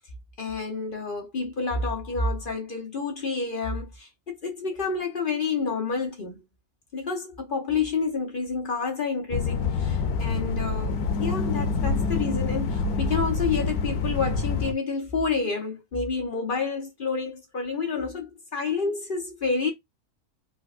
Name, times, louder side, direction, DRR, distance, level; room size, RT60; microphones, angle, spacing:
voice 1, 0.4-6.4 6.9-19.7, left 4 dB, 45° left, 0.8 m, -29 dB
sound 1, 9.3-14.7, left 4 dB, 90° left, 1.2 m, -26 dB
4.1 x 2.1 x 2.4 m
omnidirectional pair, 1.5 m